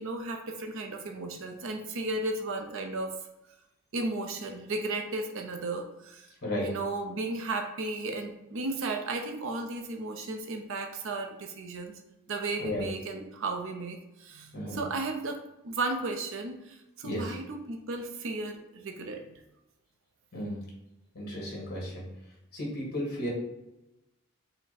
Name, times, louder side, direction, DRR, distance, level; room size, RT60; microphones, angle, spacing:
voice 1, 0.0-3.1 3.9-6.3 6.6-11.9 12.3-19.2, right 2 dB, 60° right, 3 dB, 0.5 m, -34 dB
voice 2, 17.0-17.4 20.3-20.6 21.1-22.0 22.5-23.3, equal, 45° left, -3 dB, 1.6 m, -34 dB
5.8 x 2.1 x 4.1 m, 0.93 s
head